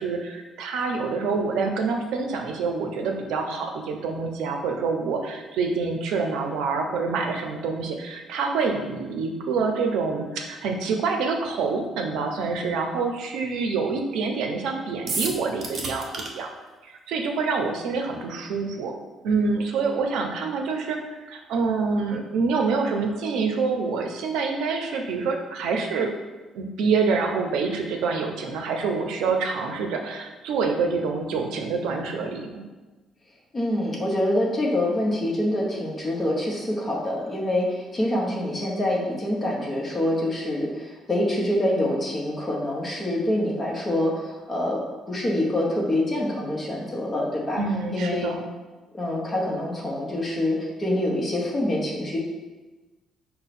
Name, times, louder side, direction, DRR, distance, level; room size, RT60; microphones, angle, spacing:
voice 1, 0.0-16.1 16.3-16.5 16.8-18.9 19.2-21.0 21.3-26.1 26.5-32.6 47.6-48.4, right 4 dB, 90° right, 3 dB, 0.5 m, -26 dB
sound 1, 15.1-16.3, right 3 dB, 40° right, 0.6 m, -29 dB
voice 2, 33.5-44.8 45.1-47.6 47.9-48.3 48.9-52.2, left 1 dB, 20° left, -3 dB, 0.9 m, -26 dB
5.5 x 2.2 x 4.1 m, 1.2 s
cardioid pair, 155°, 0 cm